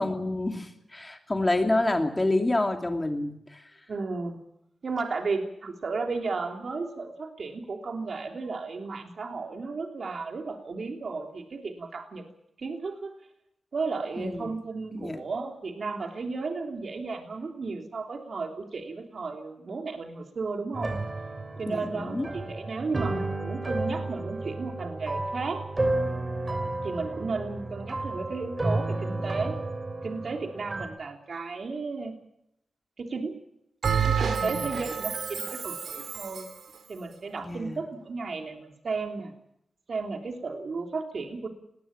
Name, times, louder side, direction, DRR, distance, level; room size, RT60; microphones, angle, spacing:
voice 1, 0.0-3.8 14.2-14.6 14.9-15.2 21.7-22.3 34.4-34.7 37.4-37.8, left 2 dB, 20° left, 4 dB, 2.6 m, -28 dB
voice 2, 3.9-4.4 4.8-12.2 12.6-13.1 13.7-21.0 21.6-25.6 26.8-29.6 30.0-32.1 33.0-33.3 34.0-36.4 36.9-39.3 39.9-41.5, right 4 dB, 60° right, 4 dB, 3.3 m, -34 dB
sound 1, 20.7-30.9, right 2 dB, 25° right, 3.1 m, -32 dB
Bell, 33.8-36.6, right 6 dB, 90° right, 2.6 m, -29 dB
20.0 x 18.0 x 8.9 m, 0.77 s
wide cardioid pair, 100°, 0 cm